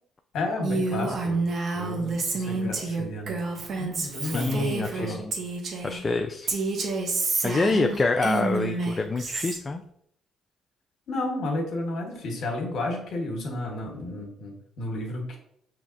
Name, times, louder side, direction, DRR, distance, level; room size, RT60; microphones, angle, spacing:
voice 1, 0.3-1.5 1.7-5.2 11.1-15.4, left 2 dB, 70° left, 1 dB, 1.2 m, -32 dB
Female speech woman speaking, 0.6-6.0 6.5-9.6, right 3 dB, 55° right, 0.9 m, -29 dB
voice 2, 4.2-5.3 5.8-6.5 7.4-9.8, left 3 dB, 30° left, 5 dB, 0.4 m, -26 dB
5.6 x 3.0 x 2.5 m, 0.71 s
supercardioid pair, 70°, 0 cm